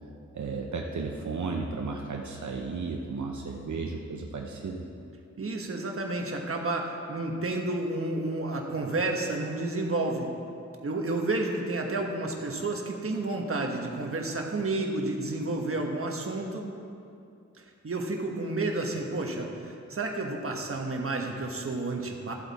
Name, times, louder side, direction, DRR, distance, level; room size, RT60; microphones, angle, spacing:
voice 1, 0.3-4.8, right 4 dB, 75° right, 1 dB, 0.8 m, -34 dB
voice 2, 5.4-10.3 10.8-16.7 17.8-22.3, right 2 dB, 50° right, 2 dB, 1.3 m, -31 dB
14.0 x 8.0 x 4.2 m, 2.5 s
wide cardioid pair, 120°, 29 cm